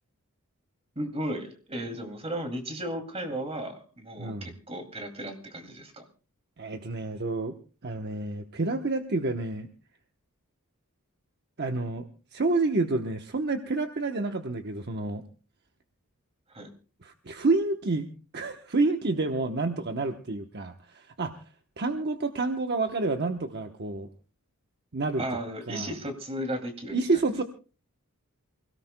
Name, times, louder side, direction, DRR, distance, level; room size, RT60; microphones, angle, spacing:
voice 1, 1.0-6.0 16.5-16.7 25.2-27.0, right 1 dB, 25° right, 5 dB, 2.5 m, -35 dB
voice 2, 4.2-4.5 6.6-7.5 7.8-9.7 11.6-12.0 12.3-15.2 17.0-21.4 21.8-24.1 24.9-25.2 25.7-25.9 26.9-27.4, right 3 dB, 50° right, 6 dB, 0.9 m, -29 dB
28.0 x 17.5 x 2.2 m, 0.35 s
head